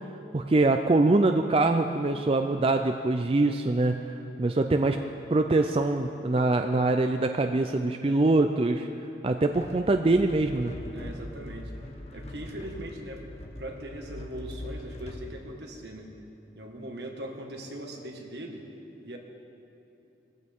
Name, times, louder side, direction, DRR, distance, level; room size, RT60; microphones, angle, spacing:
voice 1, 0.3-4.0 4.4-5.0 5.3-8.9 9.2-10.7, right 2 dB, 30° right, 6 dB, 0.4 m, -24 dB
sound 1, 9.5-15.3, left 1 dB, 35° left, 0.9 m, -42 dB
voice 2, 10.9-11.7 12.1-13.2 13.6-16.1 16.5-18.6 19.0-19.2, right 1 dB, 75° right, 1 dB, 1.7 m, -40 dB
18.5 x 15.0 x 3.6 m, 2.9 s
head